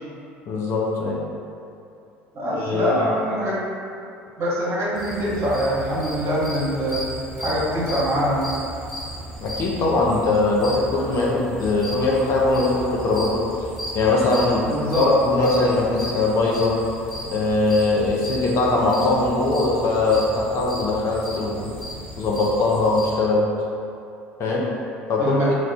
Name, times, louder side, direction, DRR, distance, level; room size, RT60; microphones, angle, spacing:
voice 1, 0.5-1.2 2.6-3.1 9.4-13.5 13.9-14.7 15.0-16.8 17.3-21.7 22.2-23.5 24.4-24.7 25.1-25.5, left 2 dB, 50° left, -3 dB, 0.5 m, -21 dB
voice 2, 2.3-3.6 4.4-7.0 7.4-8.5 14.6-15.0 25.2-25.5, equal, 40° right, -7 dB, 1.0 m, -24 dB
sound 1, 5.0-23.2, equal, ahead, 1.2 m, -35 dB
2.3 x 2.2 x 3.6 m, 2.6 s
figure-of-eight pair, 60°, 6 cm